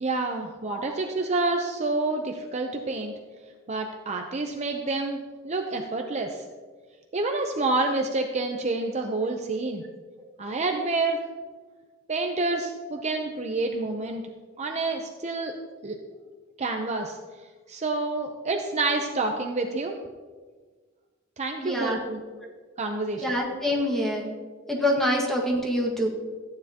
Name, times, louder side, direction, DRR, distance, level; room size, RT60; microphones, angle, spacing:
voice 1, 0.0-3.1 3.7-6.4 7.1-9.8 10.4-11.2 12.1-14.2 14.6-15.5 15.8-16.0 16.6-17.2 17.7-20.0 21.4-22.2 22.8-23.2, right 3 dB, 35° right, 3 dB, 0.6 m, -28 dB
voice 2, 21.6-22.0 22.4-22.5 23.2-24.3 24.7-26.1, equal, ahead, -2 dB, 1.7 m, -26 dB
14.0 x 9.6 x 2.9 m, 1.4 s
head